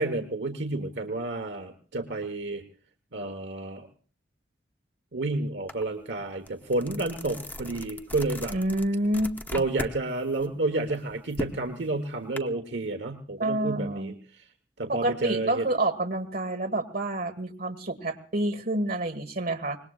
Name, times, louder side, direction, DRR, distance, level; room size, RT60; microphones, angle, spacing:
voice 1, 0.0-2.6 3.1-3.9 5.1-8.6 9.5-14.4 14.8-15.7, right 2 dB, 75° right, 6 dB, 1.3 m, -30 dB
sound 1, 5.7-5.8 6.2-10.0 10.3-12.4, left 1 dB, 10° left, 0.8 m, -38 dB
voice 2, 8.5-9.6 13.4-14.1 14.9-19.8, right 1 dB, 55° right, 5 dB, 1.7 m, -28 dB
25.0 x 20.5 x 2.4 m, 0.42 s
head